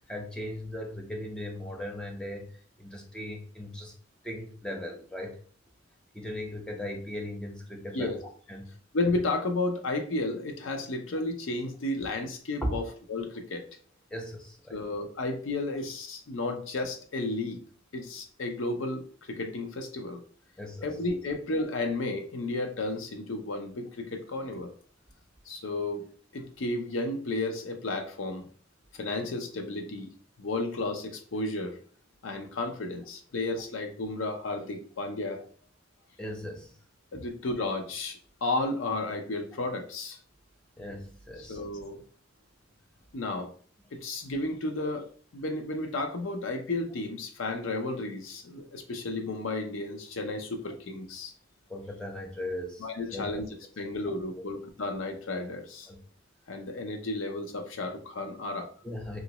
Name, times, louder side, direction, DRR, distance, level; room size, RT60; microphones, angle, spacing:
voice 1, 0.1-3.9 4.2-5.4 6.1-8.2 8.5-8.8 12.6-12.7 14.1-14.8 20.6-20.9 36.2-36.7 37.1-37.2 40.8-41.6 48.6-48.7 51.7-52.9 53.1-53.3 53.8-53.9 55.9-56.1 58.8-59.2, left 1 dB, 5° left, 1 dB, 0.5 m, -38 dB
voice 2, 8.9-12.8 13.1-13.6 14.7-17.6 17.9-20.2 20.8-24.7 25.5-28.4 28.9-30.1 30.4-31.8 32.2-35.4 37.1-40.2 41.5-42.0 43.1-43.5 43.9-51.3 52.8-53.5 53.8-55.9 56.5-58.7, left 2 dB, 80° left, 5 dB, 0.6 m, -33 dB
2.9 x 2.5 x 2.9 m, 0.44 s
head